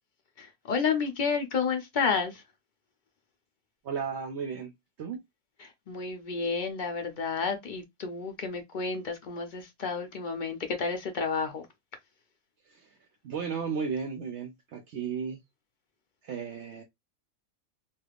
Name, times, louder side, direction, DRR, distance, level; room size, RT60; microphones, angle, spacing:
voice 1, 0.4-2.4 5.6-11.7, left 5 dB, 55° left, 0.5 m, -31 dB
voice 2, 3.8-4.7 5.0-5.2 12.7-13.0 13.2-15.4 16.2-16.8, right 6 dB, 65° right, 0.8 m, -34 dB
3.3 x 2.5 x 2.3 m
omnidirectional pair, 1.4 m